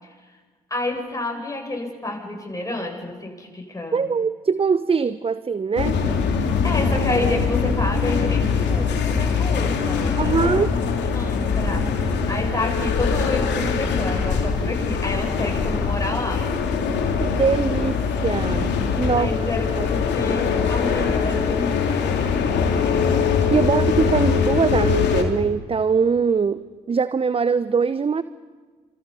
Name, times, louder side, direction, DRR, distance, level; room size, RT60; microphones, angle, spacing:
voice 1, 0.0-0.4 0.7-4.1 6.6-10.7 11.1-11.9 12.3-16.4 19.2-22.7 23.7-23.8, left 1 dB, 15° left, 1 dB, 7.8 m, -30 dB
voice 2, 3.9-6.0 10.2-10.7 17.2-19.3 19.8-19.9 23.5-28.2, right 5 dB, 30° right, 15 dB, 0.8 m, -22 dB
sound 1, 5.8-25.2, left 5 dB, 60° left, 3.0 m, -22 dB
29.0 x 27.0 x 5.6 m, 1.5 s
figure-of-eight pair, 45°, 20 cm